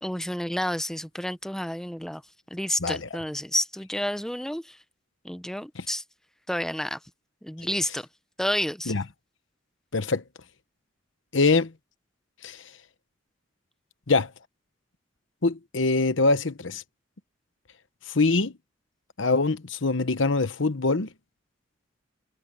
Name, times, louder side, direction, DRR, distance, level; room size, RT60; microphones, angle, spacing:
voice 1, 0.0-2.2 2.5-4.8 5.2-6.0 6.5-7.0 7.4-8.1 8.4-8.9, left 1 dB, 5° left, 0.6 m, -30 dB
voice 2, 9.9-10.2 11.3-11.7 12.4-12.6 14.1-14.3 15.4-16.8 18.1-18.5 19.2-21.1, left 3 dB, 75° left, 1.1 m, -23 dB
head